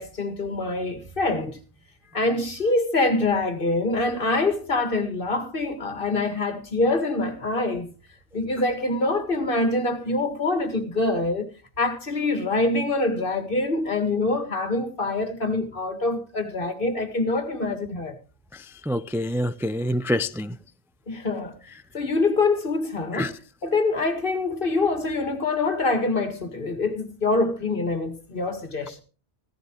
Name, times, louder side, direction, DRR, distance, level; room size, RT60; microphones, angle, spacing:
voice 1, 0.0-1.6 2.1-7.9 8.3-11.5 11.8-18.2 21.1-21.6 21.9-23.4 23.6-29.0, left 2 dB, 55° left, 2.0 m, -25 dB
voice 2, 18.9-20.5 23.1-23.3, equal, 5° right, 0.4 m, -26 dB
16.0 x 14.5 x 3.0 m
omnidirectional pair, 1.1 m